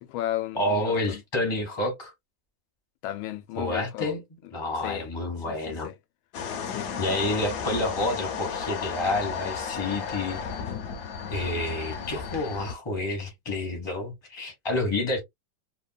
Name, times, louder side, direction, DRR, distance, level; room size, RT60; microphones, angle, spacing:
voice 1, 0.0-1.2 3.0-4.1 4.8-5.1 5.5-6.0 6.7-6.9, left 13 dB, 90° left, 1.4 m, -34 dB
voice 2, 0.5-2.1 3.6-4.2 4.5-5.9 7.0-10.4 11.3-15.2, left 2 dB, 20° left, 0.6 m, -29 dB
sound 1, 6.3-12.7, left 6 dB, 70° left, 1.1 m, -33 dB
3.4 x 2.2 x 2.2 m
omnidirectional pair, 2.1 m